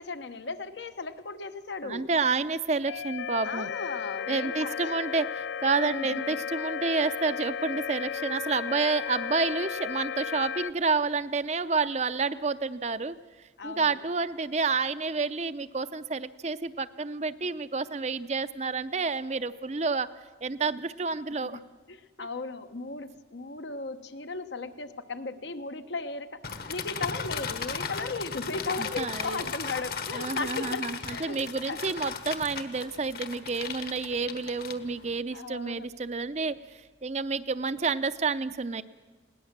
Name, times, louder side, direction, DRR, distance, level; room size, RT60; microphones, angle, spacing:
voice 1, 0.0-2.1 3.4-5.0 5.8-6.2 13.6-14.0 21.5-31.8 35.3-35.9, left 3 dB, 75° left, 9 dB, 1.1 m, -36 dB
voice 2, 1.8-3.7 4.3-13.2 13.6-20.1 20.4-21.6 22.2-22.3 29.0-29.4 30.1-38.8, right 4 dB, 35° right, 13 dB, 0.6 m, -29 dB
sound 1, 2.9-10.7, left 7 dB, 90° left, 0.6 m, -34 dB
sound 2, 26.4-35.2, left 5 dB, 55° left, 1.3 m, -36 dB
21.0 x 18.0 x 7.4 m, 1.4 s
head